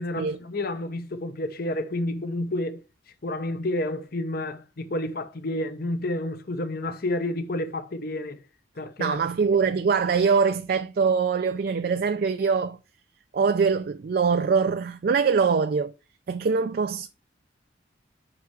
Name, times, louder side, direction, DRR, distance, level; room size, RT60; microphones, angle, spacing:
voice 1, 0.0-2.8 3.2-8.4 8.8-9.2, left 1 dB, 50° left, 0.7 m, -30 dB
voice 2, 9.0-12.8 13.3-15.9 16.3-17.1, right 5 dB, 50° right, 0.3 m, -23 dB
5.9 x 5.4 x 4.6 m
head